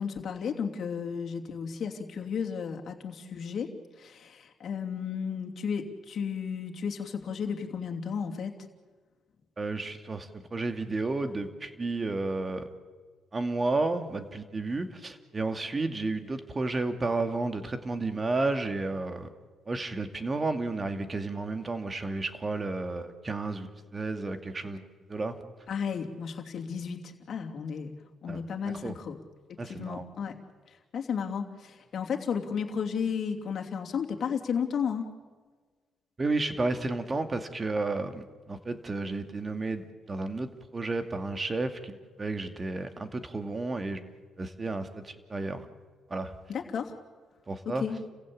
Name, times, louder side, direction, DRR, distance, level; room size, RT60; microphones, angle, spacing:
voice 1, 0.0-8.5 25.7-27.9 28.2-29.2 29.5-30.3 30.7-35.1 46.5-46.9 47.6-48.0, left 6 dB, 55° left, 2 dB, 2.9 m, -33 dB
voice 2, 9.6-12.7 13.3-19.3 19.7-25.4 28.3-28.4 28.8-28.9 29.6-30.0 36.2-44.1 44.4-45.7 46.1-46.3 47.5-47.8, right 3 dB, 30° right, 8 dB, 2.3 m, -32 dB
30.0 x 16.0 x 8.7 m, 1.4 s
cardioid pair, 90°, 0 cm